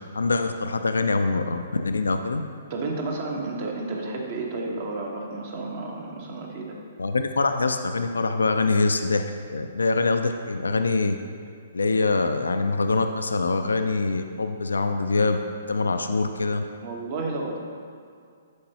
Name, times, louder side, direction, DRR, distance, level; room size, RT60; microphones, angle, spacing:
voice 1, 0.1-2.4 7.0-11.2 11.7-15.4 15.7-16.6, left 3 dB, 80° left, 7 dB, 0.4 m, -24 dB
voice 2, 2.7-6.8 16.8-17.6, right 3 dB, 45° right, 0 dB, 1.2 m, -31 dB
10.5 x 4.6 x 2.9 m, 2.2 s
figure-of-eight pair, 125°, 0 cm